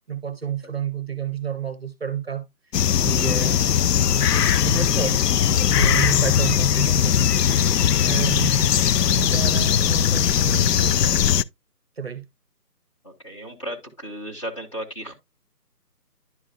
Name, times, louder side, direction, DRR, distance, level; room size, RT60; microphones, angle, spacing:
voice 1, 0.1-2.5 3.0-3.8 4.2-5.3 5.6-8.7 9.1-11.1 12.0-12.3, right 8 dB, 40° right, 0.8 m, -31 dB
sound 1, 2.7-11.4, left 9 dB, 75° left, 0.5 m, -19 dB
voice 2, 13.0-15.2, equal, 20° left, 1.1 m, -35 dB
11.0 x 5.1 x 2.4 m
figure-of-eight pair, 155°, 48 cm